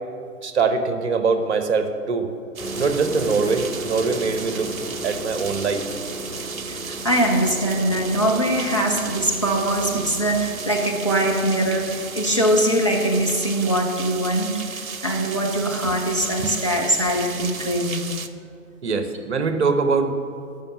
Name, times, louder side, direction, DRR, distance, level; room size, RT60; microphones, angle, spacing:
voice 1, 0.4-2.3 2.8-4.7 5.0-5.8 15.8-15.9 16.4-16.5 18.8-20.1, right 4 dB, 50° right, 8 dB, 1.1 m, -23 dB
sound 1, 2.6-16.0, right 1 dB, ahead, 1.9 m, -37 dB
sound 2, 2.6-18.3, right 5 dB, 65° right, 0.8 m, -35 dB
voice 2, 6.7-18.0, right 1 dB, 25° left, 1 dB, 0.4 m, -22 dB
12.5 x 5.7 x 7.3 m, 2.4 s
figure-of-eight pair, 125°, 45 cm